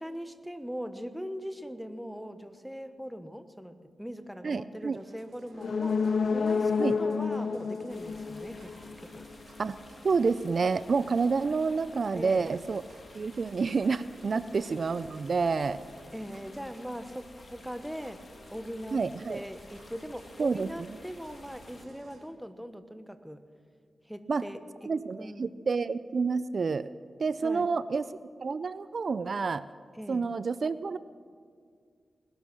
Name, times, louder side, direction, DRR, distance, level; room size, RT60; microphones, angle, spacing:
voice 1, 0.0-9.3 12.1-12.4 14.3-14.5 16.1-23.4 24.1-25.5 27.4-27.7 29.9-30.3, equal, ahead, 9 dB, 1.1 m, -41 dB
voice 2, 4.4-5.0 6.8-6.9 9.6-9.8 10.0-12.8 13.1-15.8 18.9-19.4 20.4-20.7 24.3-24.4 24.9-26.9 27.2-28.1 28.4-29.6 30.1-31.0, right 4 dB, 60° right, 15 dB, 0.4 m, -28 dB
sound 1, 4.9-22.3, right 2 dB, 80° right, 2.4 m, -55 dB
sound 2, 5.5-9.3 9.6-9.7, left 5 dB, 70° left, 0.5 m, -29 dB
sound 3, 7.9-21.9, left 3 dB, 55° left, 1.6 m, -53 dB
20.0 x 11.5 x 6.2 m, 2.1 s
cardioid pair, 60°, 0 cm